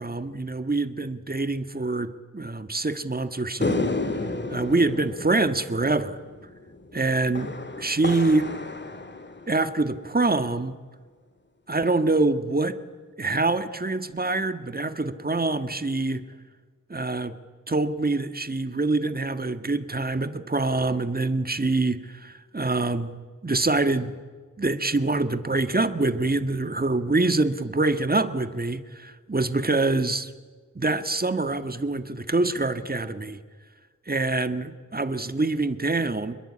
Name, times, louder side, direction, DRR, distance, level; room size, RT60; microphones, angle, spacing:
voice 1, 0.0-3.9 4.5-6.2 6.9-7.5 7.8-8.5 9.5-10.7 11.7-12.8 13.2-16.2 16.9-17.3 17.7-23.1 23.4-24.1 24.6-30.3 30.8-33.4 34.1-36.3, right 2 dB, 30° right, 10 dB, 1.7 m, -25 dB
sound 1, 3.6-10.1, left 2 dB, 35° left, 2.1 m, -32 dB
28.5 x 21.5 x 8.7 m, 1.5 s
wide cardioid pair, 85°, 30 cm